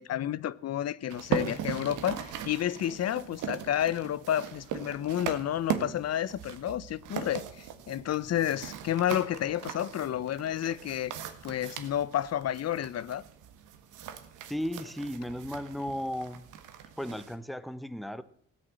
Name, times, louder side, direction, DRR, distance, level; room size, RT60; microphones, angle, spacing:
voice 1, 0.0-11.1 11.4-13.2, left 11 dB, 55° left, 0.7 m, -30 dB
sound 1, 1.1-17.4, right 9 dB, 90° right, 1.8 m, -39 dB
voice 2, 14.5-16.5 17.0-18.2, equal, ahead, 1.0 m, -35 dB
16.5 x 9.7 x 7.6 m
cardioid pair, 90°, 30 cm